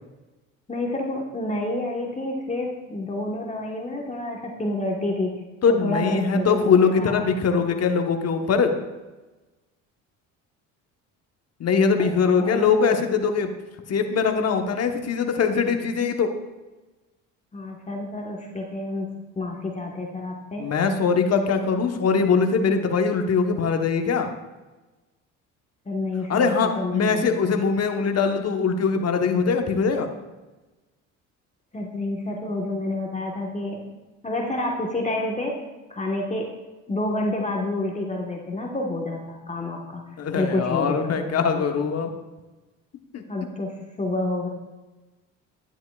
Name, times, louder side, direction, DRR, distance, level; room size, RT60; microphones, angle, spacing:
voice 1, 0.7-5.3 5.7-7.3 12.0-12.1 12.4-12.9 17.5-19.1 19.4-20.7 25.8-27.2 31.7-33.8 34.2-35.6 35.9-36.5 36.9-40.0 40.4-41.7 43.3-44.5, left 2 dB, 20° left, 0 dB, 1.3 m, -29 dB
voice 2, 5.6-8.7 11.6-13.5 13.9-16.3 20.6-24.3 26.3-30.1 40.2-42.1 43.1-43.2, left 5 dB, 45° left, 5 dB, 1.1 m, -22 dB
11.0 x 9.3 x 2.4 m, 1.2 s
supercardioid pair, 75°, 36 cm